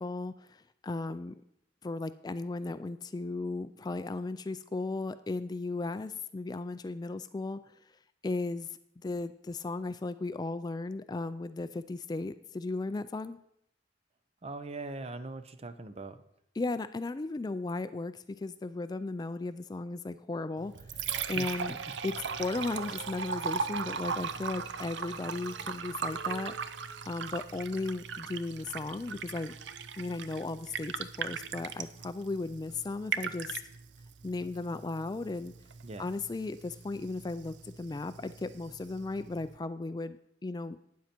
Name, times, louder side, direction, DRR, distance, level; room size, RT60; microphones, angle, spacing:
voice 1, 0.0-1.3 1.8-7.8 8.2-13.4 16.6-21.8 22.0-22.1 22.4-26.5 27.0-29.5 30.0-33.6 34.2-35.5 36.0-40.2 40.4-40.8, left 3 dB, 20° left, 13 dB, 0.3 m, -36 dB
voice 2, 14.4-16.2 21.3-21.8 35.8-36.1, right 2 dB, 35° right, 11 dB, 0.6 m, -41 dB
Liquid, 20.6-39.6, right 6 dB, 85° right, 0.6 m, -39 dB
12.0 x 9.3 x 4.4 m, 0.74 s
head